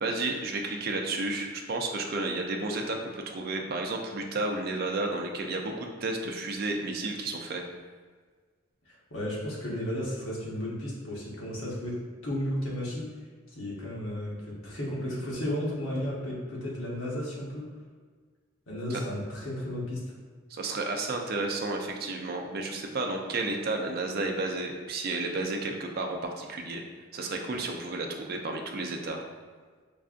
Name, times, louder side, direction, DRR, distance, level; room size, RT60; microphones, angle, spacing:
voice 1, 0.0-7.6 18.9-19.0 20.5-26.8 27.1-29.2, right 2 dB, 50° right, 2 dB, 0.4 m, -32 dB
voice 2, 9.1-13.0 13.5-14.4 14.6-17.6 18.7-20.2, left 1 dB, 80° left, -5 dB, 1.1 m, -33 dB
5.3 x 2.4 x 2.5 m, 1.6 s
head